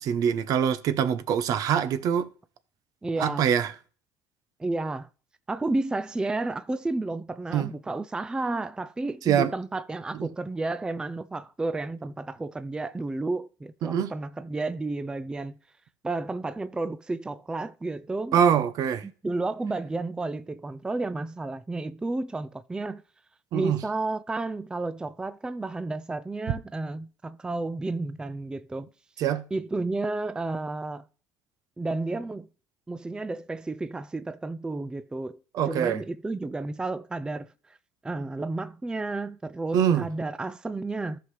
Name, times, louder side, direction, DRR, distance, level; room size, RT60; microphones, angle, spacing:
voice 1, 0.0-2.3 3.2-3.7 7.5-7.7 9.3-9.5 13.8-14.1 18.3-19.0 23.5-23.8 29.2-29.4 35.5-36.0 39.7-40.1, right 8 dB, 60° right, 0.8 m, -24 dB
voice 2, 3.0-3.5 4.6-5.1 5.5-15.6 16.0-18.4 19.0-23.0 23.5-28.9 29.5-31.1 31.8-32.5 32.9-35.4 35.6-37.8 38.0-41.2, right 2 dB, 10° right, 0.4 m, -32 dB
13.5 x 5.7 x 3.3 m
supercardioid pair, 105°, 7 cm